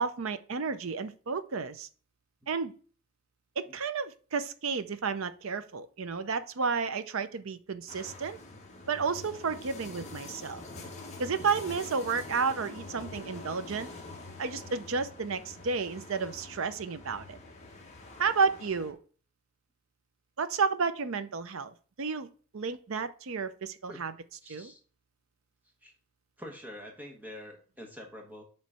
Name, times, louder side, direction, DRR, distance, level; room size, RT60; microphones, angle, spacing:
voice 1, 0.0-1.9 2.5-2.8 3.6-8.4 8.9-10.6 11.2-13.9 14.4-17.4 18.2-19.0 20.4-22.3 22.5-24.1 24.5-24.7, right 5 dB, 65° right, 12 dB, 0.6 m, -32 dB
sound 1, 7.9-18.9, left 2 dB, 30° left, 1.2 m, -45 dB
voice 2, 24.4-24.8 25.8-25.9 26.4-28.4, equal, 10° right, 1 dB, 1.3 m, -45 dB
7.4 x 3.2 x 5.6 m, 0.40 s
head